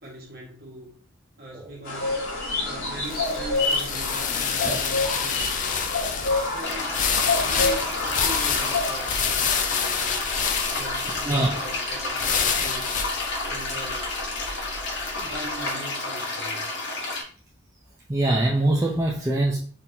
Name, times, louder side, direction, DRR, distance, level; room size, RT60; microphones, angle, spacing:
voice 1, 0.0-1.0 1.4-10.4 10.7-13.0 13.4-14.2 15.1-16.7, right 1 dB, 50° right, 1.5 m, -41 dB
sound 1, 1.9-8.8, left 3 dB, 85° left, 2.0 m, -28 dB
sound 2, 2.1-15.3, left 7 dB, 40° left, 0.4 m, -28 dB
sound 3, 6.6-17.2, left 2 dB, 60° left, 1.2 m, -31 dB
voice 2, 11.2-11.6 18.1-19.6, right 1 dB, 15° right, 0.5 m, -24 dB
4.3 x 3.6 x 2.8 m
head